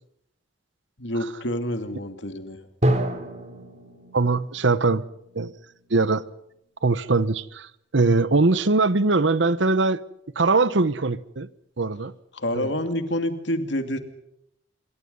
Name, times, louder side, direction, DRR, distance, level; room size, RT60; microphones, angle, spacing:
voice 1, 1.0-2.6 12.3-14.0, left 1 dB, 65° left, 2.5 m, -28 dB
Drum, 2.8-6.5, right 1 dB, 35° right, 3.5 m, -29 dB
voice 2, 4.1-5.0 5.3-5.5 5.9-6.2 6.8-7.7 7.9-10.0 10.4-11.5 11.8-12.1 12.5-12.7, right 3 dB, 70° right, 1.0 m, -21 dB
26.5 x 23.0 x 5.5 m
head